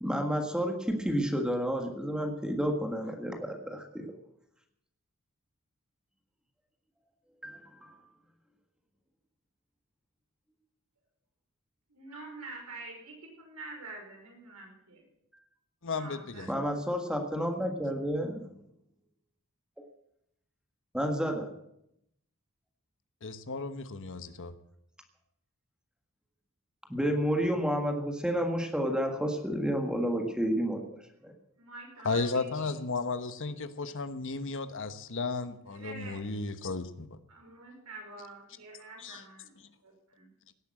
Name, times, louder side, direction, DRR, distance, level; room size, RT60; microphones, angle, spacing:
voice 1, 0.0-4.1 7.4-8.0 16.5-18.3 20.9-21.5 26.9-30.8 31.2-31.3, equal, 5° right, 3 dB, 1.6 m, -30 dB
voice 2, 11.9-15.0 15.9-16.5 31.6-32.8 33.5-33.6 33.8-33.9 35.7-36.2 37.3-39.6 39.8-40.3, right 2 dB, 80° right, 0 dB, 5.4 m, -47 dB
voice 3, 15.8-16.5 23.2-24.5 32.0-37.1 39.0-39.2, left 3 dB, 60° left, 11 dB, 1.1 m, -34 dB
17.5 x 8.6 x 7.6 m, 0.78 s
head